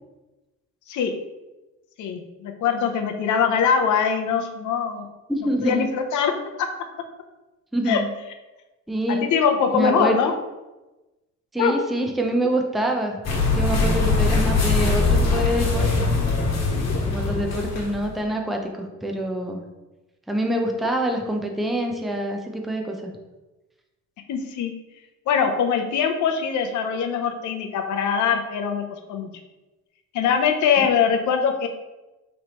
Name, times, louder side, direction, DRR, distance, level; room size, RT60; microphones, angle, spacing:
voice 1, 2.0-5.0 5.6-6.3 6.6-6.7 7.9-8.0 9.1-10.3 11.6-11.8 24.3-24.7 25.3-29.3 30.1-31.7, left 6 dB, 75° left, 4 dB, 0.7 m, -22 dB
voice 2, 5.3-5.9 7.7-8.1 8.9-9.3 9.7-10.2 11.5-13.2 13.5-16.1 17.1-19.6 20.3-23.1 30.8-30.9, right 1 dB, ahead, 2 dB, 0.6 m, -26 dB
sound 1, 13.2-18.2, left 3 dB, 60° left, 1.3 m, -21 dB
5.4 x 3.3 x 2.9 m, 1.1 s
cardioid pair, 90°, 30 cm